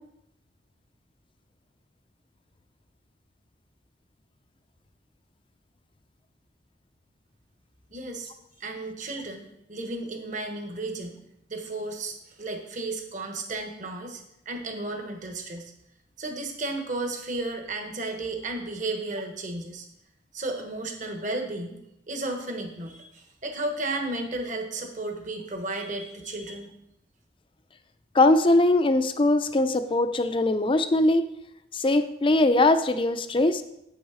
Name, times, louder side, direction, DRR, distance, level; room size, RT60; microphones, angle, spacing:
voice 1, 7.9-8.3 8.6-11.2 11.5-15.7 16.2-19.9 20.3-21.8 22.1-26.7, right 2 dB, 40° right, 4 dB, 1.2 m, -33 dB
voice 2, 28.1-31.3 31.7-33.6, left 2 dB, 30° left, 10 dB, 0.5 m, -21 dB
8.1 x 6.2 x 4.9 m, 0.80 s
head